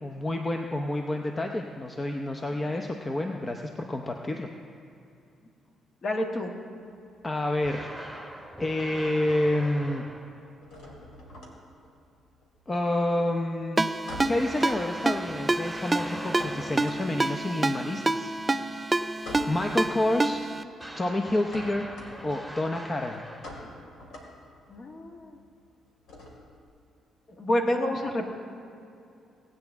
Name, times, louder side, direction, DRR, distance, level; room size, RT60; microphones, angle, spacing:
voice 1, 0.0-4.5 7.2-7.9 8.6-10.0 12.7-13.9 14.3-18.3 19.5-20.4 21.0-21.9 22.2-23.2, left 1 dB, 25° left, 3 dB, 0.7 m, -28 dB
voice 2, 6.0-6.5 24.7-25.4 27.3-28.3, left 1 dB, 45° left, 2 dB, 1.5 m, -28 dB
sound 1, 6.8-8.4 8.7-9.4 9.6-26.7, left 1 dB, 85° left, 2.3 m, -46 dB
sound 2, 7.6-10.6 14.3-17.2 20.8-23.9, equal, 10° left, 1.5 m, -43 dB
Ringtone, 13.8-20.6, right 2 dB, 15° right, 0.4 m, -28 dB
18.5 x 9.0 x 3.6 m, 2.6 s
cardioid pair, 90°, 0 cm